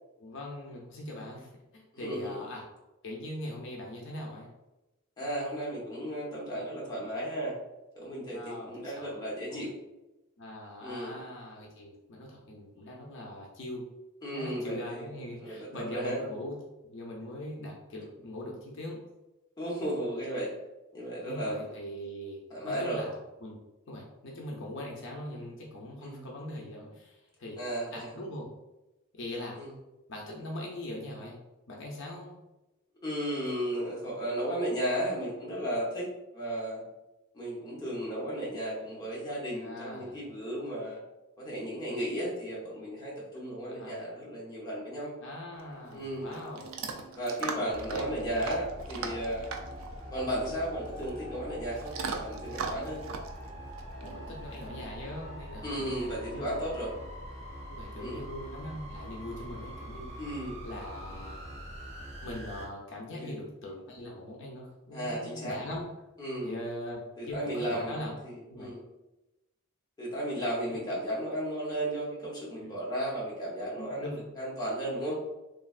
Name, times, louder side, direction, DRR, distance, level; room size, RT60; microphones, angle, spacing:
voice 1, 0.2-2.6 3.0-4.5 8.3-9.2 9.5-9.6 10.4-13.8 14.3-16.6 16.8-19.0 21.2-22.4 22.6-23.6 23.9-27.6 27.9-28.5 29.1-29.6 30.1-31.4 31.7-32.4 39.6-40.2 43.8-43.9 45.2-46.7 47.5-48.4 54.0-56.5 57.7-60.1 60.6-61.5 62.2-65.9 66.4-68.1 68.5-68.7 70.7-70.8 72.6-72.7 73.8-74.2, left 1 dB, 60° left, -2 dB, 0.5 m, -41 dB
voice 2, 1.9-2.4 5.2-7.6 7.9-9.7 10.8-11.2 14.2-15.1 15.4-16.2 19.6-20.6 20.9-21.6 22.5-23.0 26.0-26.2 27.6-28.1 29.5-29.7 33.0-36.8 37.3-41.0 41.4-45.1 45.9-46.3 47.1-49.5 50.1-53.0 55.6-56.9 58.0-58.3 60.2-60.6 63.2-63.3 64.9-65.6 66.2-66.6 67.2-68.8 70.0-75.2, right 1 dB, 20° left, -5 dB, 0.8 m, -34 dB
Chewing mastication / Dog, 45.6-54.7, right 5 dB, 70° right, 0.3 m, -40 dB
sound 1, 47.7-62.7, equal, 30° right, 0.8 m, -43 dB
3.1 x 2.3 x 2.4 m, 1.0 s
head